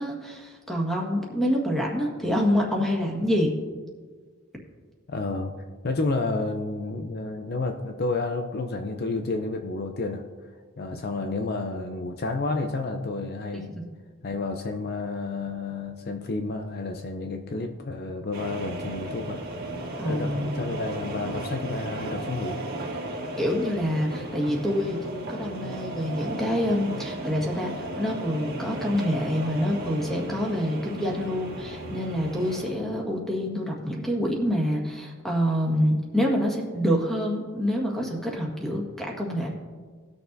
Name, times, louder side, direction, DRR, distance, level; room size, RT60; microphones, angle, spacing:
voice 1, 0.0-3.5 13.5-13.6 20.0-20.8 23.4-39.5, equal, ahead, -2 dB, 1.7 m, -27 dB
voice 2, 5.1-10.2 10.8-13.7 14.2-19.4 20.0-22.6, left 3 dB, 50° left, 5 dB, 0.6 m, -30 dB
sound 1, 18.3-32.7, right 1 dB, 50° right, 1.6 m, -35 dB
18.5 x 6.6 x 2.7 m, 1.5 s
head